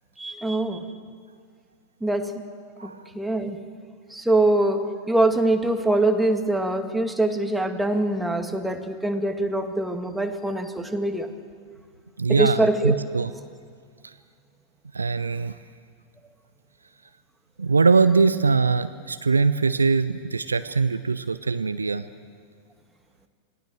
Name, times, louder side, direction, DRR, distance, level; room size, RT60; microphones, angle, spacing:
voice 1, 0.2-0.8 2.0-2.3 2.8-3.6 4.1-11.3 12.3-12.9, right 2 dB, 5° right, 5 dB, 2.0 m, -23 dB
voice 2, 12.2-13.3 14.0-14.1 14.9-15.5 17.6-22.0, right 4 dB, 75° right, 13 dB, 0.7 m, -22 dB
26.5 x 19.0 x 7.7 m, 2.1 s
figure-of-eight pair, 90°, 0 cm